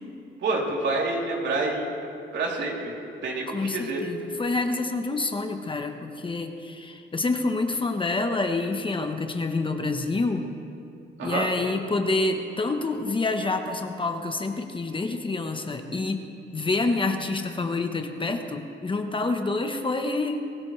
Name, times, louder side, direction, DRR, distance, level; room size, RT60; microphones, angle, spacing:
voice 1, 0.4-1.9 2.3-3.0 3.2-4.0 11.2-11.5, right 3 dB, 65° right, -2 dB, 3.3 m, -27 dB
voice 2, 3.5-10.5 11.2-20.4, left 3 dB, 25° left, 5 dB, 1.1 m, -27 dB
23.5 x 15.0 x 3.3 m, 2.6 s
cardioid pair, 90°, 20 cm